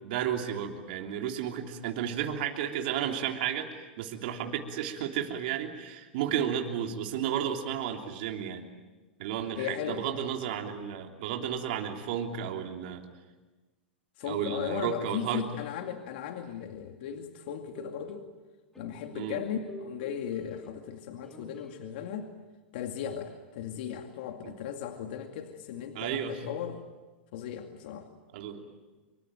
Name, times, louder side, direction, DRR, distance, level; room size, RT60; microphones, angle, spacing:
voice 1, 0.0-8.7 9.2-13.0 14.2-15.4 19.1-19.4 24.4-24.5 25.9-26.4 28.3-28.7, right 9 dB, 60° right, 3 dB, 3.3 m, -33 dB
voice 2, 9.6-10.1 14.2-18.2 18.8-22.3 22.7-26.8 27.3-28.1, left 9 dB, 60° left, 5 dB, 2.3 m, -37 dB
sound 1, 17.5-18.3 18.7-21.0 21.2-21.8, equal, 5° left, 2.4 m, -49 dB
26.0 x 24.0 x 9.0 m, 1.2 s
hypercardioid pair, 110°, 6 cm